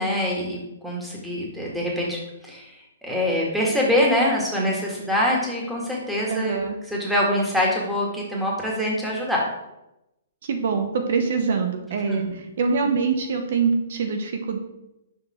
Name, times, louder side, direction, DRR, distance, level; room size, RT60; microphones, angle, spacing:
voice 1, 0.0-9.4 12.1-12.4, left 1 dB, ahead, -4 dB, 1.9 m, -24 dB
voice 2, 6.3-6.8 10.5-12.2 12.6-14.6, right 5 dB, 60° right, 5 dB, 0.9 m, -24 dB
6.5 x 4.7 x 4.4 m, 0.91 s
hypercardioid pair, 135°, 0 cm